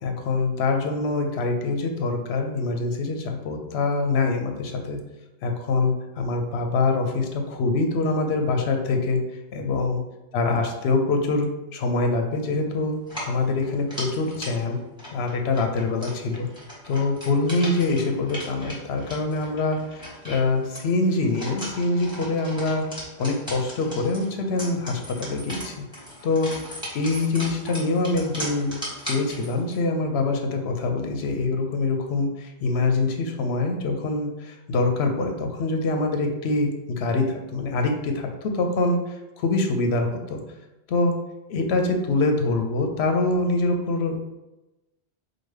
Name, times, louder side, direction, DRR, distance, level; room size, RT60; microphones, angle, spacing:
voice 1, 0.0-5.0 5.4-9.2 9.5-10.0 10.3-14.8 15.1-16.5 16.9-22.9 23.2-26.5 26.9-28.8 29.0-38.3 38.5-40.4 40.9-41.1 41.5-44.2, left 3 dB, 80° left, 4 dB, 0.9 m, -24 dB
sound 1, 13.0-29.8, equal, 5° right, 1.2 m, -38 dB
4.9 x 2.2 x 3.2 m, 1.0 s
omnidirectional pair, 1.1 m